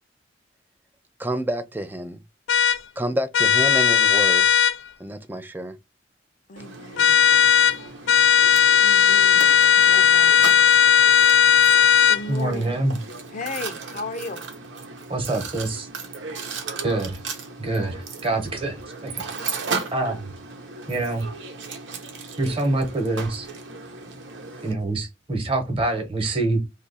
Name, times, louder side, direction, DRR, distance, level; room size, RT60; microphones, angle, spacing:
voice 1, 1.2-2.2 3.0-4.5 5.0-5.8, right 1 dB, 10° right, 0.4 m, -28 dB
sound 1, 2.5-2.8 3.3-4.8 7.0-7.8 8.1-12.2, left 8 dB, 90° left, 0.3 m, -16 dB
voice 2, 6.5-7.2 8.8-9.5 9.7-10.3 12.1-12.8 13.3-14.4, left 3 dB, 40° left, 0.6 m, -35 dB
Mechanisms, 6.6-24.7, right 4 dB, 80° right, 0.9 m, -36 dB
voice 3, 12.3-13.0 15.1-15.9 16.8-17.2 17.6-19.1 19.7-20.3 20.9-21.3 22.4-23.5 24.6-26.6, right 2 dB, 30° right, 1.0 m, -25 dB
2.9 x 2.4 x 4.0 m
head